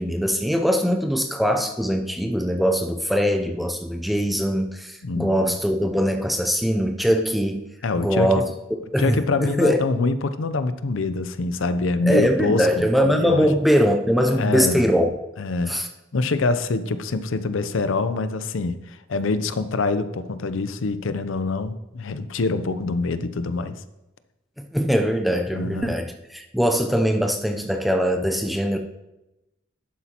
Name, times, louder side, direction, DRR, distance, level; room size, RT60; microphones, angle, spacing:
voice 1, 0.0-7.7 8.0-8.5 8.9-9.8 12.0-15.1 15.7-15.9 24.6-28.8, equal, ahead, 4 dB, 0.4 m, -22 dB
voice 2, 5.0-5.6 7.8-8.4 9.0-13.5 14.3-14.9 15.4-15.7 16.1-23.8 25.5-25.9, left 3 dB, 80° left, 12 dB, 0.6 m, -25 dB
11.0 x 8.4 x 2.9 m, 0.98 s
head